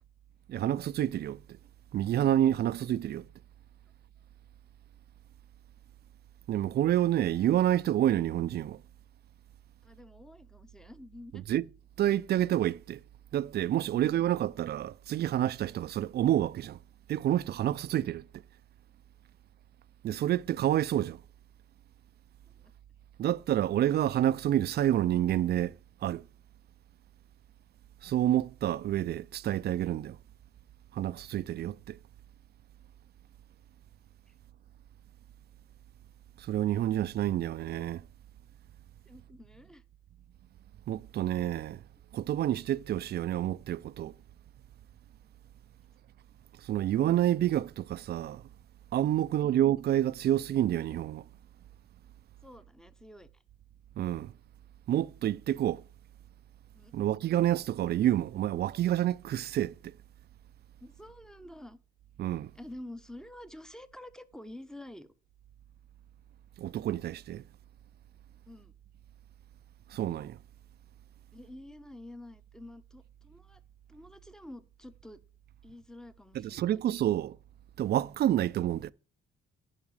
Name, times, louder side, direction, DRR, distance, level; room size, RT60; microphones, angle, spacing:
voice 1, 0.5-1.6 1.9-3.3 6.5-8.8 11.3-11.7 12.0-13.0 13.3-16.8 17.1-18.4 20.0-21.2 23.2-26.2 28.0-30.2 30.9-32.0 36.4-38.0 40.9-41.8 42.1-44.1 46.6-48.4 48.9-51.2 54.0-54.3 54.9-55.8 56.9-59.9 62.2-62.5 66.6-67.4 69.9-70.4 76.3-77.4 77.8-78.9, right 12 dB, 55° right, 0.4 m, -28 dB
voice 2, 9.8-11.6 13.8-14.0 22.6-22.7 34.3-34.4 39.1-39.8 49.4-49.6 52.4-53.4 56.7-56.9 60.8-61.8 62.5-65.1 68.5-68.7 71.3-73.6 73.9-75.2 75.6-76.8 78.0-78.2, left 1 dB, 5° left, 0.8 m, -49 dB
10.5 x 4.8 x 4.8 m
cardioid pair, 90°, 20 cm